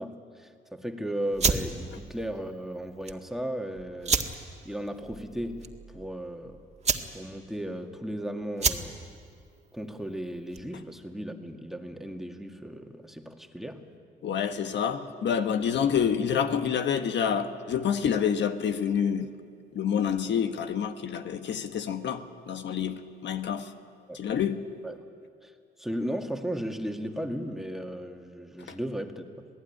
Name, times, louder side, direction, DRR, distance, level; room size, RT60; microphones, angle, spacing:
voice 1, 0.0-4.3 4.6-5.7 5.9-6.6 7.1-9.0 9.7-13.8 24.1-24.2 24.8-25.0 25.4-25.5 25.8-29.5, equal, ahead, 4 dB, 2.1 m, -35 dB
sound 1, 1.3-10.8, right 5 dB, 35° right, 1.8 m, -32 dB
voice 2, 14.2-19.3 19.7-23.7 24.1-24.6, left 7 dB, 65° left, 7 dB, 1.4 m, -28 dB
27.0 x 18.0 x 9.9 m, 2.2 s
cardioid pair, 90°, 20 cm